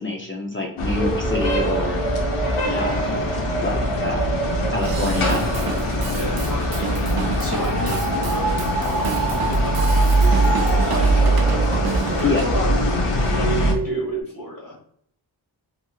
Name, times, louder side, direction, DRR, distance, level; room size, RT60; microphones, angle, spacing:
voice 1, 0.0-2.0 2.7-3.2 3.6-4.3 4.7-5.5 12.2-12.4, left 3 dB, 25° left, 0 dB, 0.5 m, -26 dB
sound 1, 0.8-13.7, right 1 dB, 90° left, 0.7 m, -22 dB
sound 2, 0.9-14.2, right 3 dB, 15° right, 0.8 m, -29 dB
voice 2, 2.6-3.1 6.1-11.1 12.1-14.8, left 1 dB, 45° left, -7 dB, 1.2 m, -32 dB
Drum kit / Drum, 4.8-12.3, right 7 dB, 50° right, 0.5 m, -31 dB
2.8 x 2.8 x 2.3 m, 0.64 s
wide cardioid pair, 65°, 48 cm